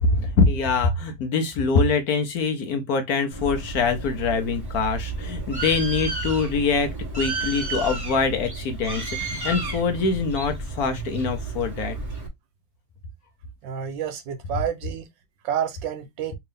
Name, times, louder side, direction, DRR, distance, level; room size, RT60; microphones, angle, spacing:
voice 1, 0.0-12.0, left 4 dB, 65° left, 1.0 m, -24 dB
Bird, 3.3-12.3, right 3 dB, 15° right, 1.1 m, -32 dB
voice 2, 13.6-15.0 15.4-16.4, right 9 dB, 80° right, 1.5 m, -29 dB
3.5 x 2.9 x 3.3 m
omnidirectional pair, 2.0 m